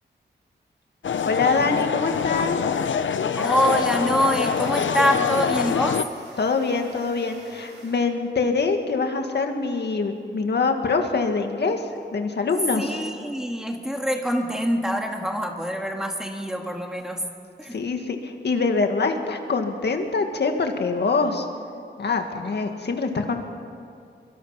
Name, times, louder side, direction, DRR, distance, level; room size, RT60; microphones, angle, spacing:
sound 1, 1.0-6.0, left 7 dB, 90° left, 0.7 m, -24 dB
voice 1, 1.3-2.6 6.4-11.8 12.1-13.0 17.7-21.5 22.0-23.4, left 4 dB, 65° left, 4 dB, 1.9 m, -24 dB
voice 2, 3.4-6.0 12.8-17.3 17.6-17.8, equal, 5° right, 2 dB, 1.8 m, -25 dB
sound 2, 3.4-8.6, right 2 dB, 85° right, 6.0 m, -48 dB
24.0 x 24.0 x 5.8 m, 2.4 s
wide cardioid pair, 175°, 19 cm